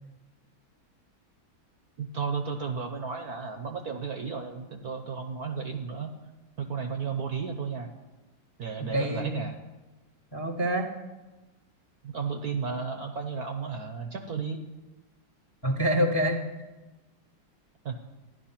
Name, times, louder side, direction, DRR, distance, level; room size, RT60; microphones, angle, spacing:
voice 1, 2.0-6.1 6.6-7.9 8.6-9.5 12.0-14.6 17.8-18.0, right 5 dB, 55° right, 5 dB, 1.2 m, -33 dB
voice 2, 8.8-9.5 10.3-10.9 15.6-16.4, equal, 15° left, 4 dB, 1.0 m, -26 dB
14.0 x 11.0 x 5.8 m, 1.1 s
omnidirectional pair, 2.3 m